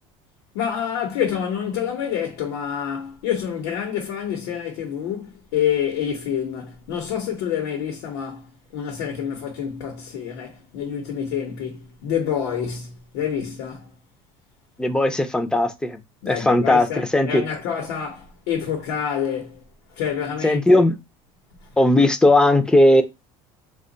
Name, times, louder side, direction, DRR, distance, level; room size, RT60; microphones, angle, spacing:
voice 1, 0.5-13.9 16.2-19.6 19.9-20.8, left 8 dB, 90° left, 0.8 m, -27 dB
voice 2, 14.8-16.0 16.3-17.4 20.4-20.9 21.8-23.0, left 1 dB, 5° left, 0.4 m, -17 dB
2.9 x 2.2 x 3.8 m
cardioid pair, 145°, 13 cm